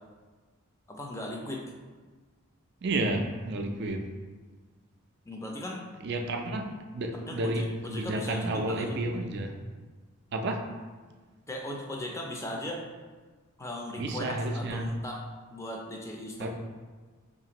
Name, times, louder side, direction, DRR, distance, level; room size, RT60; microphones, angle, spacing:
voice 1, 0.9-1.6 5.3-5.9 7.1-9.0 11.5-12.8 13.6-15.2 15.5-16.5, left 1 dB, 15° left, 0 dB, 0.4 m, -38 dB
voice 2, 2.8-4.0 6.0-6.6 6.9-9.5 10.3-10.7 14.0-14.9 16.4-16.5, right 1 dB, 50° right, 4 dB, 0.4 m, -31 dB
4.7 x 2.5 x 2.9 m, 1.4 s
head